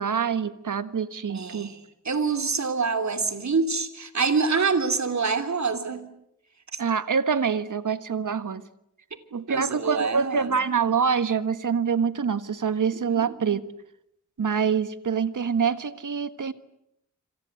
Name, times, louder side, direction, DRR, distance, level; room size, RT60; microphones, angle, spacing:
voice 1, 0.0-1.7 6.8-8.6 9.3-13.6 14.4-16.5, right 6 dB, 75° right, 12 dB, 1.5 m, -25 dB
voice 2, 1.3-6.0 6.7-6.8 9.5-10.6 12.9-13.4, right 4 dB, 60° right, 8 dB, 3.0 m, -26 dB
27.5 x 26.0 x 7.8 m, 0.78 s
wide cardioid pair, 65°, 31 cm